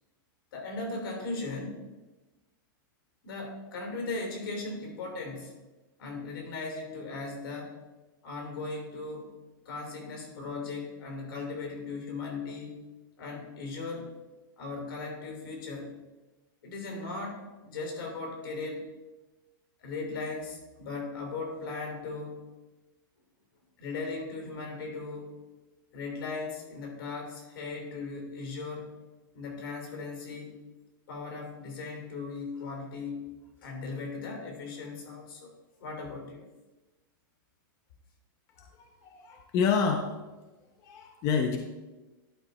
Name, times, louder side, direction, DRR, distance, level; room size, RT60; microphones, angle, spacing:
voice 1, 0.5-1.9 3.2-5.5 6.0-7.8 8.2-9.3 9.6-12.8 13.2-14.1 14.6-15.9 16.6-18.9 19.8-22.5 23.8-25.3 25.9-28.9 29.3-30.6 31.1-33.2 33.6-35.5 35.8-36.5, left 3 dB, 75° left, 1 dB, 3.0 m, -38 dB
voice 2, 38.6-40.1 40.8-41.6, left 6 dB, 25° left, 4 dB, 0.5 m, -28 dB
11.0 x 4.6 x 4.0 m, 1.2 s
supercardioid pair, 165°, 12 cm